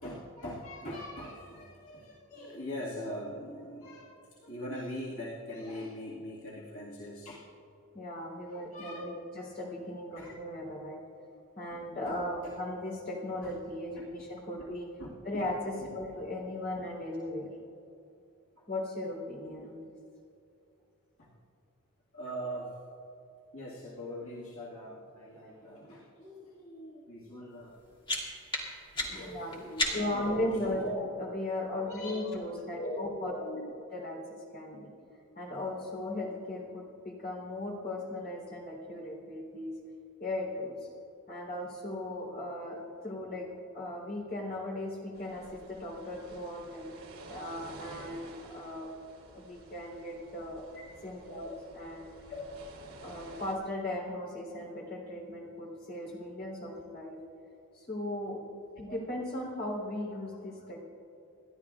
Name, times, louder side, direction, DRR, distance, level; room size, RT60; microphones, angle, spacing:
voice 1, 0.0-7.5 8.4-9.2 10.1-10.4 12.0-12.5 13.4-13.5 15.0-15.4 15.8-16.1 16.7-16.8 18.6-18.7 21.2-21.3 22.1-22.7 23.5-27.8 28.9-31.1 31.8-32.4 32.7-33.7 51.3-51.4 52.4-52.5 58.9-59.0, equal, 65° left, -6 dB, 1.8 m, -42 dB
voice 2, 7.9-11.0 11.6-14.9 15.2-17.5 18.7-19.8 22.3-22.4 29.2-29.5 29.9-30.9 31.2-33.4 33.9-34.9 35.3-39.7 40.2-40.9 41.3-43.5 43.7-46.9 47.3-48.9 49.3-50.6 51.0-52.0 53.0-57.2 57.7-58.4 58.8-60.8, left 1 dB, 45° left, -2 dB, 3.5 m, -37 dB
sound 1, 27.6-30.3, left 1 dB, 25° left, 2.3 m, -35 dB
sound 2, 45.1-53.6, right 2 dB, 70° right, 3.1 m, -51 dB
29.0 x 11.5 x 2.4 m, 2.7 s
head